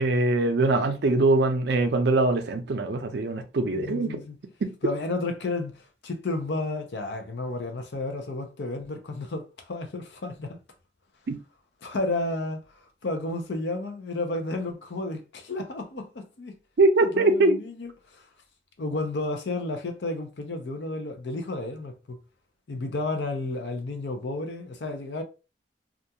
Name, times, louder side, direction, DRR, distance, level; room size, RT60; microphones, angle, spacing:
voice 1, 0.0-4.2 11.3-11.4 16.8-17.6, right 2 dB, 65° right, 0.5 m, -22 dB
voice 2, 3.6-4.4 4.8-10.6 11.8-16.5 17.0-18.2 18.8-22.2 22.7-25.2, left 2 dB, 75° left, 0.6 m, -32 dB
2.4 x 2.3 x 2.7 m
head